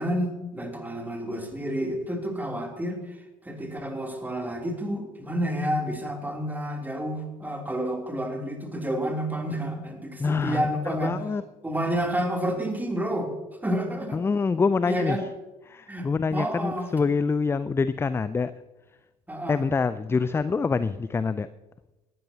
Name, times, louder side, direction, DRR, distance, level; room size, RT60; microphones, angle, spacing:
voice 1, 0.0-11.2 11.6-13.3 13.6-14.2 14.9-15.2 15.9-16.9 19.3-19.6, equal, 10° right, 2 dB, 3.0 m, -30 dB
voice 2, 10.2-10.7 11.0-11.4 14.1-15.2 15.7-18.5 19.5-21.5, left 4 dB, 15° left, 15 dB, 0.4 m, -25 dB
19.0 x 13.0 x 2.8 m, 1.1 s
figure-of-eight pair, 65°, 18 cm